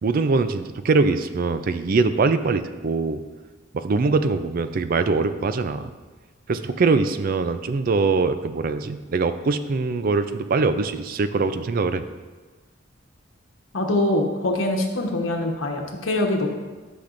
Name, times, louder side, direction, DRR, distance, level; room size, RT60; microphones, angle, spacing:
voice 1, 0.0-3.2 3.7-5.9 6.5-12.0, right 4 dB, 45° right, 11 dB, 0.4 m, -22 dB
voice 2, 13.7-16.5, left 1 dB, 90° left, 1 dB, 1.1 m, -23 dB
11.5 x 5.9 x 2.6 m, 1.3 s
head